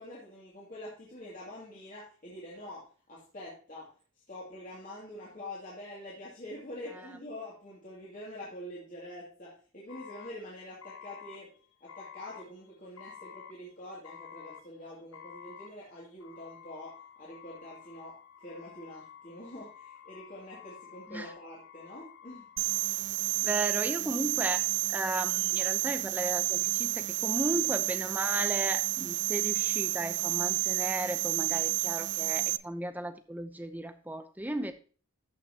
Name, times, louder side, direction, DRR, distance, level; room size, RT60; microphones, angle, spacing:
voice 1, 0.0-3.9 4.3-11.5 11.8-22.5, left 1 dB, 35° left, -7 dB, 2.5 m, -45 dB
sound 1, 9.9-23.5, left 8 dB, 70° left, 1.1 m, -51 dB
sound 2, 22.6-32.6, right 18 dB, 55° right, 0.4 m, -30 dB
voice 2, 23.4-34.7, right 1 dB, 10° right, 9 dB, 0.6 m, -35 dB
13.0 x 5.8 x 2.9 m, 0.38 s
head